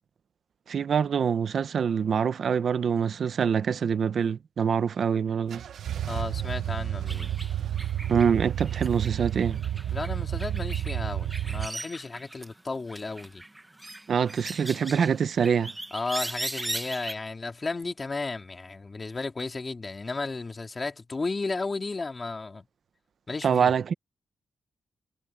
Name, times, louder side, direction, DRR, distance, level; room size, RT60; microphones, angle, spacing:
voice 1, 0.7-5.6 8.1-9.6 14.1-15.7 23.4-23.9, right 7 dB, 55° right, 0.7 m, -25 dB
sound 1, 5.5-11.7, right 11 dB, 80° right, 1.0 m, -31 dB
voice 2, 6.1-7.4 9.9-13.4 15.9-22.6 23.3-23.7, left 3 dB, 25° left, 2.7 m, -34 dB
sound 2, 7.1-12.6 12.9-17.1, right 1 dB, 10° right, 1.2 m, -39 dB
wide cardioid pair, 165°, 0 cm